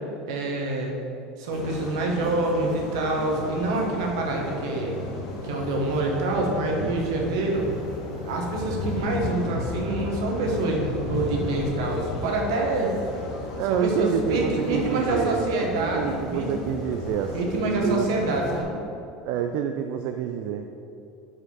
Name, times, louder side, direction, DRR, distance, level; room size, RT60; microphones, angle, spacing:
voice 1, 0.3-0.9 1.4-5.0 5.4-7.7 8.2-12.9 13.6-16.7 17.3-18.8, right 2 dB, 80° right, 0 dB, 1.2 m, -26 dB
sound 1, 1.5-18.6, left 2 dB, 80° left, 1.3 m, -34 dB
voice 2, 13.6-15.5 15.7-18.2 19.2-20.6, right 8 dB, 65° right, 6 dB, 0.3 m, -28 dB
5.4 x 4.1 x 5.4 m, 2.7 s
supercardioid pair, 105°, 3 cm